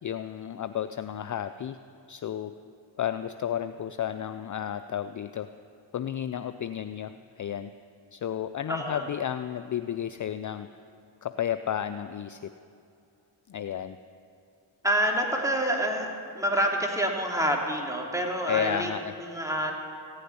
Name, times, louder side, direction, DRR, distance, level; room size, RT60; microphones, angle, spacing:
voice 1, 0.0-1.8 2.1-2.6 3.0-5.5 5.9-7.7 8.1-10.7 11.2-12.5 13.5-14.0 18.5-19.1, left 9 dB, 40° left, 11 dB, 0.5 m, -32 dB
voice 2, 8.7-9.1 14.8-19.7, right 1 dB, 5° right, 0 dB, 2.8 m, -27 dB
15.5 x 6.6 x 9.7 m, 2.5 s
supercardioid pair, 45°, 48 cm